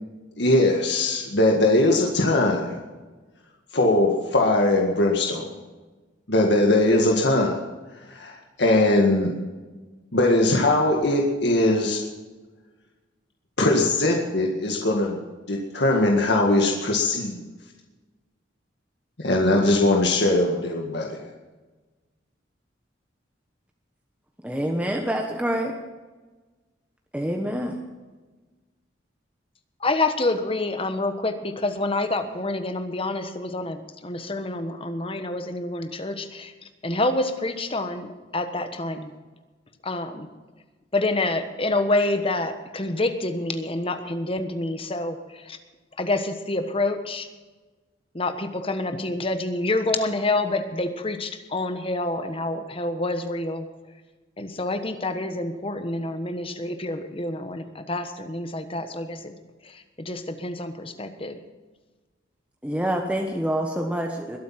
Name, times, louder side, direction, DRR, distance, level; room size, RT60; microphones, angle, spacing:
voice 1, 0.4-2.8 3.7-5.5 6.3-7.6 8.1-8.3 8.6-9.3 10.1-12.0 13.6-15.2 15.5-17.5 19.2-21.2, left 2 dB, 60° left, 0 dB, 1.9 m, -20 dB
voice 2, 24.4-25.8 27.1-27.8 62.6-64.4, right 1 dB, 5° right, 2 dB, 1.2 m, -26 dB
voice 3, 29.8-36.5 36.8-39.1 39.8-40.3 40.9-45.6 46.0-47.3 48.1-53.7 54.4-59.3 59.6-61.4, left 2 dB, 30° left, 8 dB, 1.3 m, -27 dB
21.5 x 8.4 x 5.9 m, 1.3 s
head